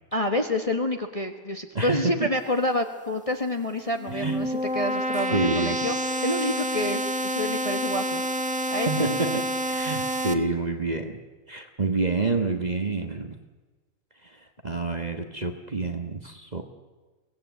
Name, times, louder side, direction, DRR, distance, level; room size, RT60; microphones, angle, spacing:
voice 1, 0.1-5.9 6.2-8.2 8.7-9.1, left 1 dB, 25° left, 5 dB, 1.2 m, -28 dB
voice 2, 1.7-2.3 4.1-4.5 5.3-5.9 8.9-11.2 11.5-13.4 14.2-16.6, right 3 dB, 30° right, 6 dB, 1.3 m, -28 dB
sound 1, 3.8-10.3, equal, 5° right, 1.0 m, -28 dB
24.0 x 17.0 x 8.2 m, 1.3 s
omnidirectional pair, 1.7 m